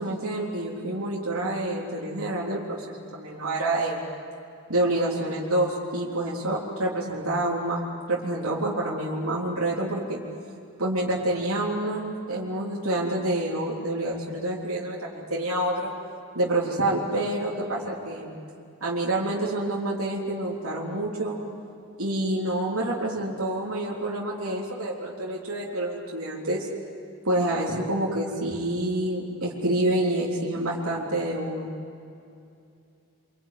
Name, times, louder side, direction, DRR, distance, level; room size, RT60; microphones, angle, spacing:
voice 1, 0.0-4.0 4.7-7.8 8.1-10.2 10.8-15.9 16.3-18.3 18.8-21.4 22.0-26.7 27.2-31.7, right 1 dB, 80° right, -4 dB, 3.7 m, -27 dB
25.5 x 24.5 x 9.4 m, 2.5 s
head